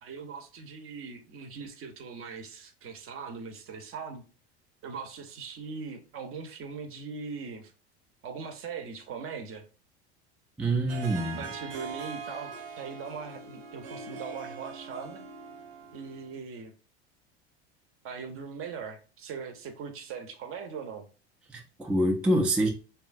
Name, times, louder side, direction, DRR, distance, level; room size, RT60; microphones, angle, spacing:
voice 1, 0.0-4.2 4.8-7.7 8.2-9.7 11.4-15.2 15.9-16.7 18.0-21.1, right 5 dB, 40° right, 0.7 m, -40 dB
voice 2, 10.6-11.4 21.5-22.7, right 1 dB, 5° right, 0.4 m, -26 dB
Harp, 10.9-16.4, right 5 dB, 70° right, 0.8 m, -42 dB
2.9 x 2.3 x 2.5 m
hypercardioid pair, 95°, 33 cm